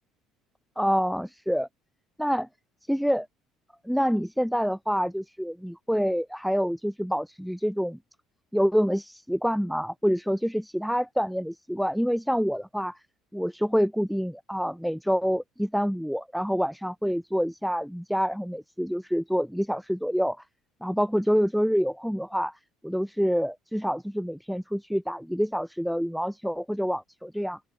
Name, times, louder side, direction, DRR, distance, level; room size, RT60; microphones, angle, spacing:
voice 1, 0.8-1.7 2.2-2.5 2.9-3.3 3.8-8.0 8.5-13.0 13.3-20.4 20.8-22.5 22.8-27.6, equal, ahead, 0.7 m, -27 dB
open air
hypercardioid pair, 70°, 0 cm